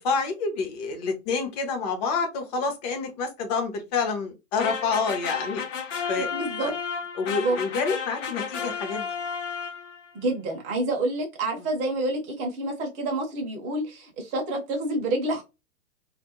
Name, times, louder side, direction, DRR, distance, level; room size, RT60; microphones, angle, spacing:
voice 1, 0.0-5.6 6.1-6.3 6.6-6.7 7.2-9.1, left 4 dB, 30° left, 0.7 m, -28 dB
sound 1, 4.6-10.1, left 6 dB, 60° left, 0.8 m, -32 dB
voice 2, 6.2-6.7 7.2-7.6 10.1-15.4, right 2 dB, 20° right, 0.6 m, -28 dB
2.4 x 2.1 x 2.9 m
figure-of-eight pair, 120°, 42 cm